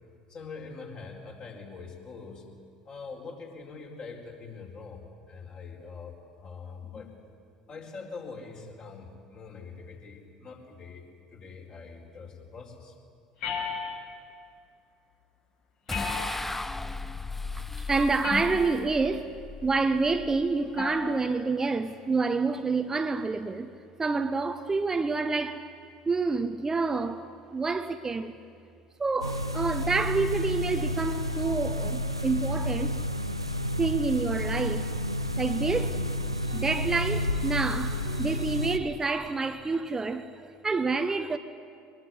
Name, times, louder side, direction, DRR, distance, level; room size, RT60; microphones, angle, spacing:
voice 1, 0.3-2.5 2.8-7.1 7.7-11.0 11.3-13.0, left 4 dB, 40° left, 4.6 m, -43 dB
sound 1, 13.4-14.3 15.9-16.7 18.2-18.9 20.8-21.2, left 5 dB, 55° left, 6.0 m, -34 dB
sound 2, 15.9-21.2, left 3 dB, 10° left, 0.6 m, -37 dB
voice 2, 17.6-19.3 19.6-23.7 24.0-25.6 26.1-27.3 27.5-28.3 29.0-32.9 33.8-34.9 35.4-41.4, right 4 dB, 20° right, 0.9 m, -28 dB
sound 3, 29.2-38.8, left 1 dB, 90° right, 0.8 m, -30 dB
23.0 x 21.5 x 9.6 m
figure-of-eight pair, 65°, 3 cm